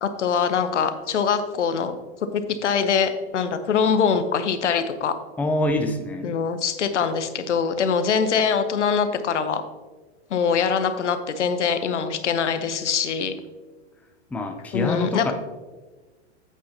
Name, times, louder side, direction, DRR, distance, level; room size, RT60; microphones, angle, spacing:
voice 1, 0.0-1.9 2.3-5.1 6.2-9.6 10.3-13.3 14.7-15.3, left 6 dB, 85° left, 10 dB, 0.9 m, -23 dB
voice 2, 5.4-6.3 14.3-15.3, left 1 dB, 5° left, 5 dB, 0.5 m, -25 dB
8.4 x 8.2 x 2.8 m, 1.3 s
hypercardioid pair, 110°, 35 cm